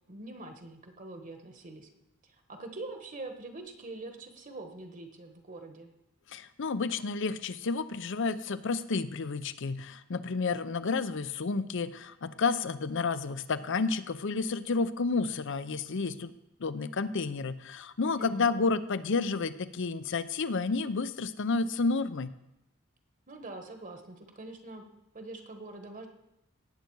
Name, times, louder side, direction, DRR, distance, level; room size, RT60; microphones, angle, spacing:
voice 1, 0.1-1.9 2.5-5.9 18.2-18.5 23.3-24.8 25.1-26.1, right 2 dB, 40° right, 5 dB, 1.2 m, -44 dB
voice 2, 6.3-16.3 16.6-22.4, left 4 dB, 60° left, 14 dB, 0.6 m, -31 dB
17.5 x 7.8 x 4.6 m, 0.89 s
head